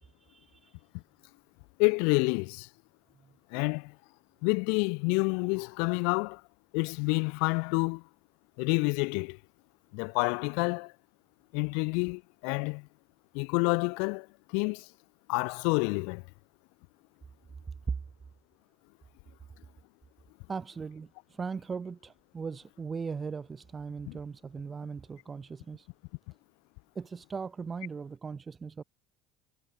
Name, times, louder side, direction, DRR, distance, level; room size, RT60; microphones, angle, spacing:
voice 1, 0.0-0.8 17.9-18.0 20.5-25.9 26.9-28.8, right 5 dB, 25° right, 0.9 m, -38 dB
voice 2, 1.8-2.7 3.5-3.9 4.4-6.4 6.7-8.0 8.6-9.4 9.9-10.9 11.5-12.9 13.3-14.9 15.3-16.2 24.1-24.2, left 39 dB, 75° left, 0.8 m, -28 dB
supercardioid pair, 100°, 0 cm